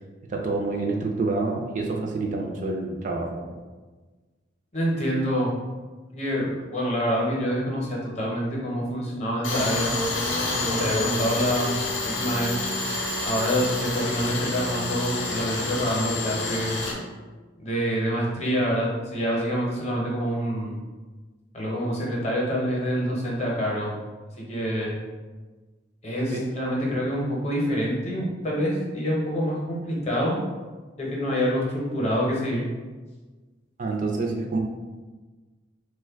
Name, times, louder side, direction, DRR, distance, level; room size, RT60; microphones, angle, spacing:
voice 1, 0.3-3.5 26.3-26.4 33.8-34.6, right 3 dB, 40° right, 1 dB, 0.3 m, -27 dB
voice 2, 4.7-5.5 6.1-9.9 10.4-11.7 12.0-12.6 13.2-16.8 17.6-20.8 21.5-23.9 24.4-24.9 26.0-30.4 31.0-32.7, equal, 35° left, -3 dB, 0.7 m, -26 dB
Tools, 9.4-16.9, left 2 dB, 85° left, 0.6 m, -28 dB
3.0 x 2.2 x 3.4 m, 1.3 s
head